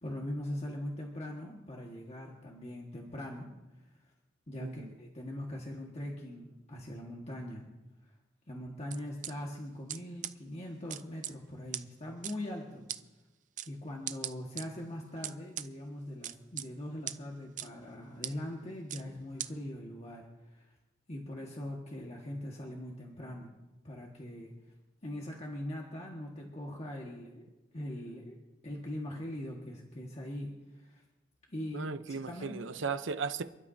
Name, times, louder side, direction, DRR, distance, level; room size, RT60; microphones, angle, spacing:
voice 1, 0.0-3.5 4.5-7.6 8.5-12.9 13.7-20.7 21.1-23.5 23.8-24.5 25.0-27.5 27.7-28.4 28.6-31.0 31.5-32.5, left 1 dB, 35° left, 1.6 m, -41 dB
voice 2, 4.6-4.9 31.7-33.4, right 5 dB, 85° right, 0.7 m, -36 dB
sound 1, 8.9-9.3 9.9-10.0 10.2-10.3 10.9-11.3 11.7-11.8 12.2-12.3 12.9-13.0 13.6-13.7 14.1-14.6 15.2-15.7 16.2-16.7 17.1-17.2 17.6-17.7 18.2-18.3 18.9-19.0 19.4-19.5, right 11 dB, 45° right, 0.5 m, -37 dB
28.5 x 12.0 x 2.7 m
head